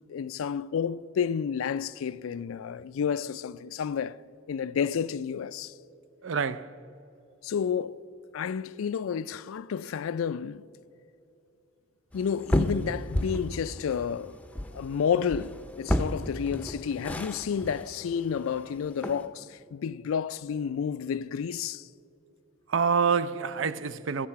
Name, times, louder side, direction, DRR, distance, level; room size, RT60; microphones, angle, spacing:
voice 1, 0.1-4.2 4.5-5.7 7.4-8.1 8.3-10.6 12.1-14.4 14.7-21.9, left 7 dB, 85° left, 0.4 m, -30 dB
voice 2, 6.2-6.7 22.7-24.3, right 5 dB, 70° right, 0.5 m, -27 dB
sound 1, 12.1-19.3, left 1 dB, 5° left, 0.6 m, -33 dB
20.5 x 7.5 x 5.8 m
head